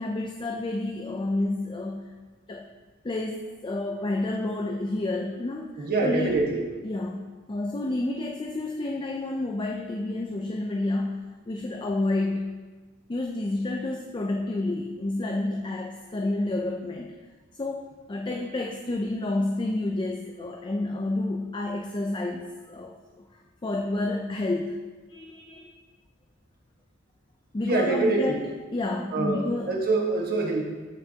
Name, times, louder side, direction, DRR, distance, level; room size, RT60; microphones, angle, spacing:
voice 1, 0.0-2.1 2.5-2.7 3.0-6.3 6.8-12.6 13.1-17.1 17.6-23.0 23.3-24.8 25.1-25.7 27.5-28.4 28.7-29.7, left 2 dB, 25° left, 1 dB, 0.5 m, -30 dB
voice 2, 5.8-6.7 27.6-28.4 29.1-30.6, right 3 dB, 50° right, -1 dB, 1.4 m, -25 dB
13.5 x 5.7 x 2.8 m, 1.3 s
head